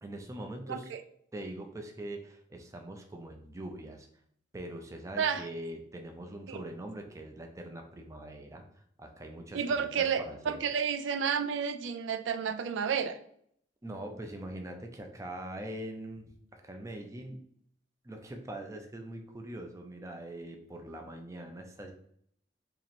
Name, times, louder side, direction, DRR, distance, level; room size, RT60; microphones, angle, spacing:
voice 1, 0.0-0.9 1.3-4.1 4.5-8.6 9.0-10.6 13.8-17.4 18.0-21.9, right 1 dB, 15° right, 3 dB, 0.5 m, -42 dB
voice 2, 0.7-1.0 5.2-5.4 6.5-6.6 9.5-13.2, right 7 dB, 80° right, 10 dB, 0.4 m, -31 dB
2.9 x 2.8 x 4.2 m, 0.66 s
head